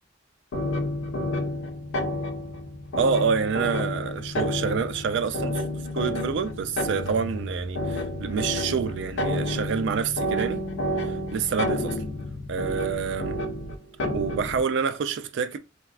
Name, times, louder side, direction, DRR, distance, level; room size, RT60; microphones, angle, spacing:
sound 1, 0.5-14.7, left 1 dB, 85° left, 0.5 m, -30 dB
voice 1, 3.0-5.6 5.9-10.6 11.0-12.0 12.5-13.4 14.1-15.6, right 6 dB, 65° right, 0.4 m, -27 dB
3.3 x 2.4 x 2.3 m
head